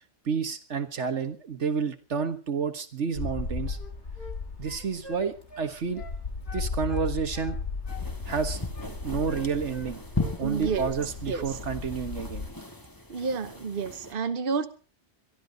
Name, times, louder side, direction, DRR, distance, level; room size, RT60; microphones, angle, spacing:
voice 1, 0.3-3.8 4.6-6.0 6.5-7.6 8.3-8.6 9.0-10.0 10.4-12.5, right 6 dB, 80° right, 9 dB, 1.8 m, -30 dB
sound 1, 3.1-12.5, left 3 dB, 75° left, 3.1 m, -36 dB
sound 2, 3.7-4.4 4.6-6.2 6.5-7.6 7.9-8.9 9.3-10.4 10.6-10.9, left 2 dB, 50° left, 2.4 m, -45 dB
sound 3, 7.9-14.1, left 2 dB, 15° left, 2.4 m, -38 dB
voice 2, 10.4-10.9 11.3-11.6 13.1-14.7, right 5 dB, 50° right, 9 dB, 1.2 m, -30 dB
23.0 x 13.5 x 4.0 m, 0.36 s
omnidirectional pair, 1.2 m